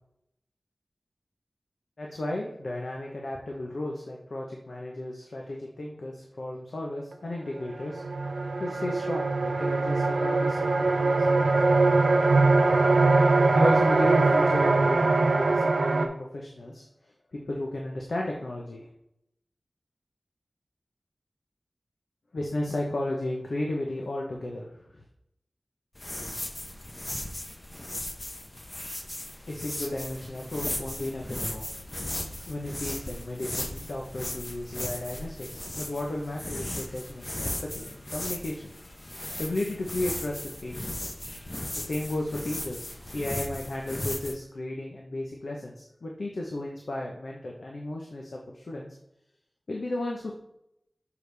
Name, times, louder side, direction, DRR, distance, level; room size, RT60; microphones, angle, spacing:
voice 1, 2.0-8.0 8.6-11.5 13.5-16.8 17.3-18.9 22.3-25.0 29.5-31.7 32.5-38.7 39.4-41.1 41.8-48.9 49.7-50.3, left 1 dB, 80° left, -1 dB, 0.9 m, -34 dB
sound 1, 7.1-7.2 7.6-16.1, right 3 dB, 85° right, 0.5 m, -22 dB
sound 2, 26.0-44.3, left 1 dB, 35° left, 0.8 m, -37 dB
6.8 x 4.8 x 3.4 m, 0.79 s
wide cardioid pair, 50°, 0 cm